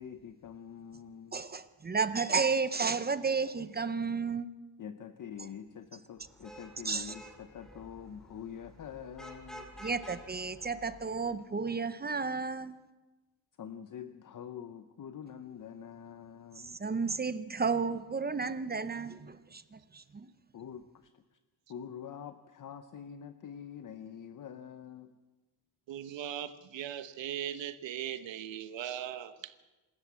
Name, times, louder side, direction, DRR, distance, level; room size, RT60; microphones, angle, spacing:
voice 1, 0.0-1.4 4.8-9.7 13.6-16.8 20.5-21.1 21.7-25.1, left 8 dB, 45° left, 10 dB, 0.8 m, -45 dB
voice 2, 1.3-4.5 6.8-7.1 9.8-12.8 16.5-20.3, right 5 dB, 25° right, 13 dB, 0.6 m, -32 dB
Vehicle horn car horn honking / Traffic noise roadway noise, 6.2-11.5, equal, ahead, 2.3 m, -51 dB
voice 3, 25.9-29.5, right 10 dB, 90° right, 11 dB, 1.2 m, -39 dB
26.5 x 13.5 x 8.3 m, 1.2 s
wide cardioid pair, 175°, 43 cm